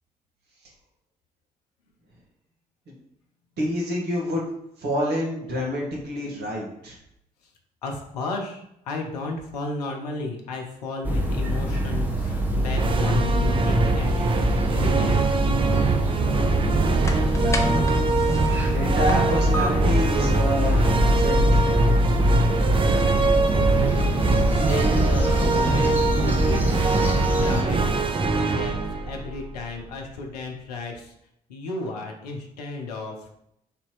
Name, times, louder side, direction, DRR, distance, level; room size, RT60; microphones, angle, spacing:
voice 1, 3.6-4.4 4.8-7.0 17.3-17.8 18.7-20.8 21.2-21.6, left 1 dB, 55° right, -3 dB, 1.4 m, -27 dB
voice 2, 7.8-14.3 14.7-15.4 23.7-28.0 28.5-28.8 29.1-31.1 31.5-33.3, left 3 dB, 75° left, 2 dB, 0.6 m, -33 dB
sound 1, 11.0-27.6, equal, 10° right, 0.9 m, -24 dB
sound 2, 12.7-30.1, right 4 dB, 25° right, 0.5 m, -23 dB
sound 3, 16.8-28.1, equal, 15° left, 0.6 m, -40 dB
3.4 x 2.8 x 4.5 m, 0.76 s
figure-of-eight pair, 45°, 20 cm